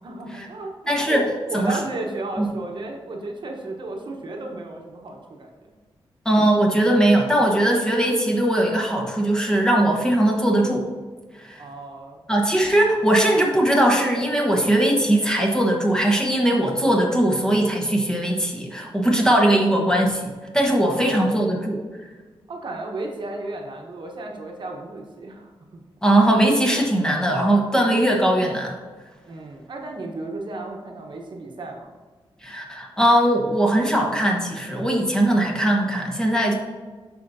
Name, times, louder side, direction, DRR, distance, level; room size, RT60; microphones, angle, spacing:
voice 1, 0.0-5.5 11.6-12.2 20.8-21.4 22.5-25.8 29.3-31.9, right 2 dB, 55° right, 1 dB, 1.0 m, -34 dB
voice 2, 0.9-1.3 1.5-1.8 2.4-2.5 6.2-10.9 11.4-11.6 12.3-21.8 26.0-28.7 32.4-36.5, right 1 dB, 5° left, 0 dB, 1.1 m, -20 dB
11.0 x 4.5 x 2.7 m, 1.4 s
wide cardioid pair, 135°, 10 cm